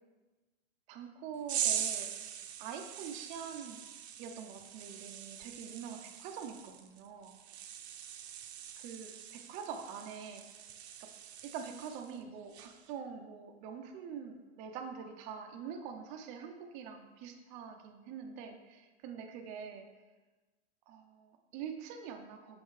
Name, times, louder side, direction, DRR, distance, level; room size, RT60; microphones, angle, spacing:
voice 1, 0.9-2.1 2.6-3.8 4.2-7.4 8.3-8.4 8.8-10.4 11.0-11.1 11.4-19.9 20.9-22.6, right 7 dB, 25° right, 4 dB, 0.4 m, -45 dB
sound 1, 1.5-12.2 12.5-12.9, right 9 dB, 90° right, 0.7 m, -41 dB
6.9 x 5.4 x 3.1 m, 1.2 s
supercardioid pair, 150°, 32 cm